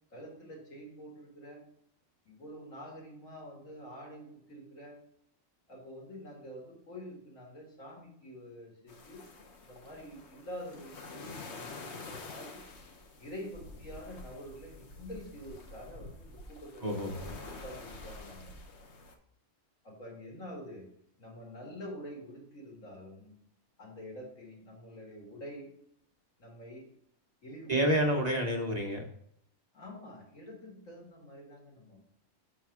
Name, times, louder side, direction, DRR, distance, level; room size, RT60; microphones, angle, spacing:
voice 1, 0.1-1.6 2.2-5.0 5.7-9.2 9.6-12.6 13.2-18.5 19.8-20.9 21.2-23.3 23.8-25.7 26.4-26.9 27.4-28.2 29.7-32.0, equal, 85° left, -3 dB, 2.6 m, -47 dB
sound 1, 8.9-19.1, left 3 dB, 60° left, 1.1 m, -48 dB
voice 2, 16.8-17.1 27.7-29.0, right 1 dB, 40° right, 2 dB, 0.8 m, -28 dB
5.9 x 4.1 x 5.9 m, 0.71 s
omnidirectional pair, 1.3 m